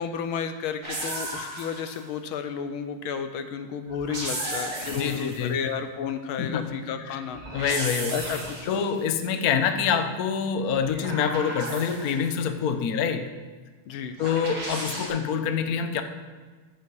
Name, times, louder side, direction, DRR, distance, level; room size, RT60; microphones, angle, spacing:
voice 1, 0.0-7.4 8.1-8.6 13.9-14.2, left 7 dB, 80° left, 8 dB, 1.6 m, -32 dB
sound 1, 0.8-2.1 3.9-5.5 7.3-8.9 10.7-12.4 14.2-15.1, right 1 dB, 85° right, 3.5 m, -34 dB
voice 2, 4.9-5.6 6.4-6.7 7.0-7.2 7.5-8.2 8.7-13.3 14.2-16.0, left 7 dB, 55° left, 7 dB, 1.1 m, -26 dB
14.0 x 8.4 x 4.8 m, 1.4 s
omnidirectional pair, 2.3 m